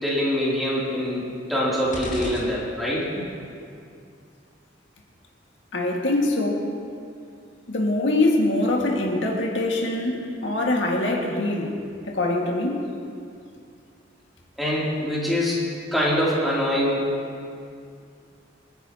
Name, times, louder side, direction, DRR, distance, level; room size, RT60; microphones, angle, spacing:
voice 1, 0.0-3.1 14.6-15.6 15.9-17.1, equal, ahead, -7 dB, 3.0 m, -24 dB
sound 1, 1.9-3.2, left 1 dB, 45° left, 1.4 m, -36 dB
voice 2, 5.7-6.7 7.7-11.8 12.1-12.8, left 2 dB, 85° left, -1 dB, 1.9 m, -23 dB
26.5 x 9.8 x 2.9 m, 2.3 s
head